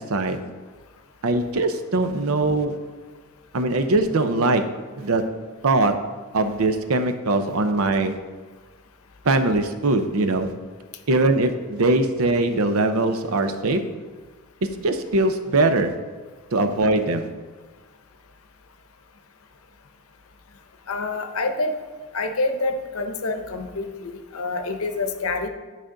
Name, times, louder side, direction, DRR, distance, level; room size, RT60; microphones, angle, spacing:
voice 1, 1.2-2.8 3.5-4.6 5.0-5.2 5.6-5.9 6.3-8.2 9.2-10.5 11.1-13.8 14.8-15.9 16.5-17.3, right 2 dB, 85° right, 8 dB, 0.7 m, -21 dB
voice 2, 20.9-21.7 22.1-25.5, left 3 dB, 85° left, 6 dB, 0.8 m, -27 dB
11.0 x 5.0 x 3.8 m, 1.4 s
head